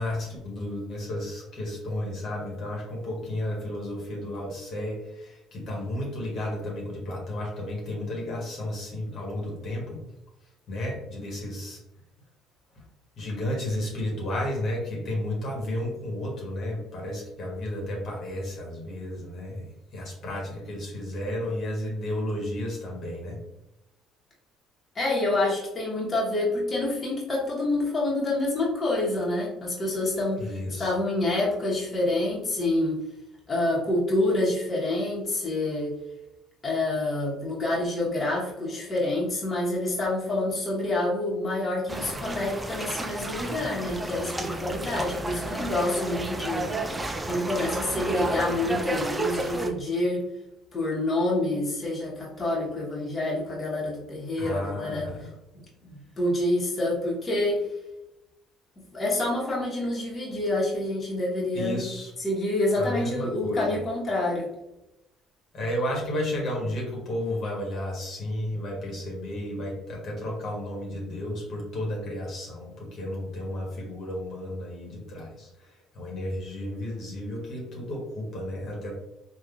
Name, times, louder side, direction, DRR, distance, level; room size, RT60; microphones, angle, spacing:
voice 1, 0.0-10.0 10.7-11.8 13.2-23.4 30.4-30.9 54.4-55.3 61.5-62.1 62.8-63.8 65.5-78.9, left 1 dB, 55° left, -2 dB, 1.1 m, -32 dB
voice 2, 24.9-33.0 33.5-36.0 36.6-46.7 47.0-50.2 50.7-55.1 55.5-57.7 58.8-61.8 62.2-64.5, left 2 dB, 30° left, -5 dB, 1.0 m, -27 dB
sound 1, 41.9-49.7, right 2 dB, 15° right, 0.4 m, -31 dB
3.6 x 2.3 x 2.3 m, 0.91 s
supercardioid pair, 75°, 0 cm